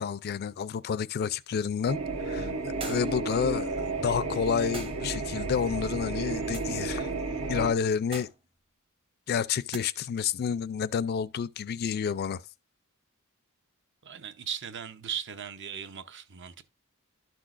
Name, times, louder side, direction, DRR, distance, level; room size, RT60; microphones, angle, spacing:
voice 1, 0.0-2.0 2.3-3.7 4.0-7.1 7.5-8.3 9.3-12.4, left 7 dB, 45° left, 0.3 m, -29 dB
sound 1, 1.9-7.7, right 3 dB, 75° right, 1.2 m, -32 dB
sound 2, 2.8-3.3 4.7-5.1 6.5-6.8 8.1-8.5 9.7-9.9, right 3 dB, 25° right, 0.8 m, -41 dB
voice 2, 14.0-16.6, right 8 dB, 55° right, 0.7 m, -38 dB
12.0 x 6.0 x 2.4 m
head